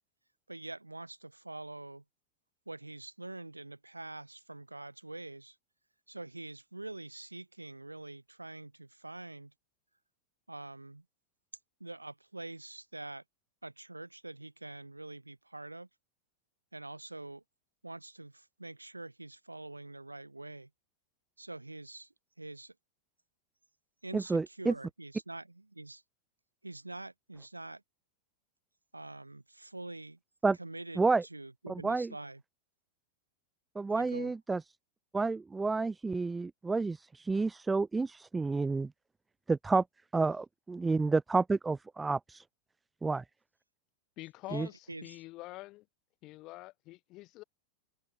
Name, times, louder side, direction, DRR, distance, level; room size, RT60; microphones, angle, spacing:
voice 1, 0.5-2.0 2.7-5.6 6.1-9.5 10.5-11.0 11.8-13.2 13.6-15.9 16.7-17.4 17.8-20.7 21.4-22.7 24.0-26.0 26.6-27.8 28.9-30.2 30.6-31.0 31.3-32.4 33.9-34.3 44.5-45.2, right 2 dB, 85° right, 2.2 m, -45 dB
voice 2, 24.1-24.7 30.4-30.6 31.0-31.2 31.7-32.1 33.8-34.6 35.1-38.9 39.5-39.8 40.1-42.4 43.0-43.2 44.5-44.7, right 3 dB, 10° right, 0.7 m, -30 dB
voice 3, 44.2-45.9 46.2-47.4, left 19 dB, 40° left, 2.5 m, -46 dB
figure-of-eight pair, 90°, 0 cm